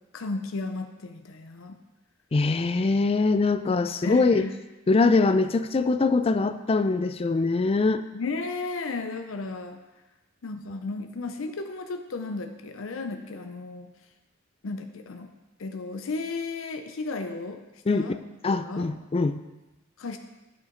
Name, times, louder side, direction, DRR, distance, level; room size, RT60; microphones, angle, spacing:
voice 1, 0.1-1.8 3.6-3.7 4.0-4.6 8.1-9.8 10.4-13.9 14.6-15.3 15.6-17.6 17.9-18.2 18.5-18.9 20.0-20.2, left 3 dB, 70° left, 7 dB, 0.6 m, -34 dB
voice 2, 2.3-4.4 4.9-8.0 17.9-18.1 18.4-19.4, left 3 dB, 30° left, 10 dB, 0.4 m, -23 dB
9.1 x 7.2 x 3.8 m, 1.1 s
head